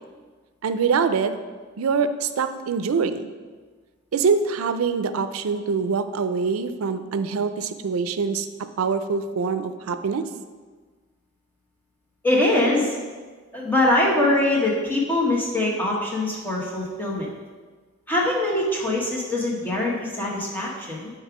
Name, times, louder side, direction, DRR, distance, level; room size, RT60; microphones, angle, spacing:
voice 1, 0.6-1.3 1.8-3.3 4.1-8.5 8.8-10.2, right 5 dB, 80° right, 10 dB, 0.4 m, -24 dB
voice 2, 12.2-12.9 13.5-17.3 18.1-21.1, left 1 dB, 10° left, -4 dB, 1.1 m, -23 dB
5.4 x 4.7 x 4.8 m, 1.4 s
head